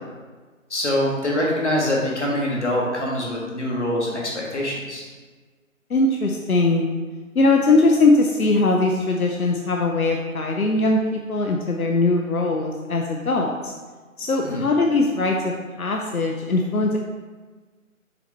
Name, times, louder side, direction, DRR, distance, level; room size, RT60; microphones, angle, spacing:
voice 1, 0.7-5.0 14.4-14.7, left 1 dB, 55° left, -3 dB, 1.7 m, -24 dB
voice 2, 5.9-6.9 7.3-13.7 14.2-17.0, left 2 dB, 85° left, 1 dB, 0.7 m, -20 dB
6.9 x 4.1 x 3.4 m, 1.4 s
figure-of-eight pair, 165°, 42 cm